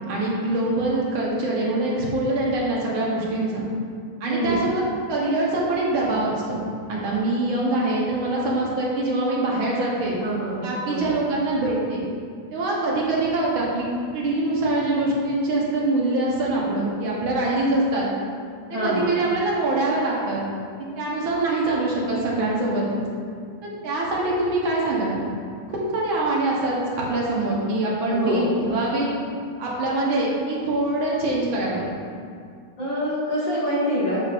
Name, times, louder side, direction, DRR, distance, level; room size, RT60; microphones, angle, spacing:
voice 1, 0.1-3.6 4.2-4.8 5.1-6.6 6.9-10.2 10.6-12.1 12.5-18.1 18.7-20.4 21.0-23.0 23.6-25.2 25.7-29.1 29.6-31.9, right 2 dB, 70° right, -4 dB, 1.8 m, -24 dB
voice 2, 4.2-4.6 10.2-10.6 10.9-11.0 18.7-19.1 28.1-28.6 32.8-34.2, equal, 60° left, -9 dB, 2.5 m, -25 dB
7.3 x 7.1 x 2.5 m, 2.2 s
omnidirectional pair, 2.4 m